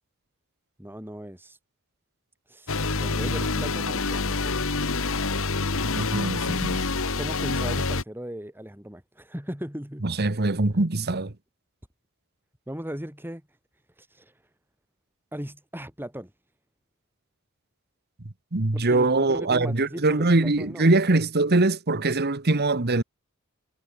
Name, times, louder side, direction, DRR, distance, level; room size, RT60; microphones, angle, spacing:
voice 1, 0.8-1.6 2.5-4.7 7.1-10.1 12.7-13.4 14.0-14.4 15.3-16.3 18.7-20.9, equal, 10° right, 5.9 m, -38 dB
sound 1, 2.7-8.0, left 3 dB, 65° left, 2.0 m, -27 dB
voice 2, 5.9-6.8 10.0-11.3 18.2-23.0, right 2 dB, 50° right, 1.4 m, -23 dB
head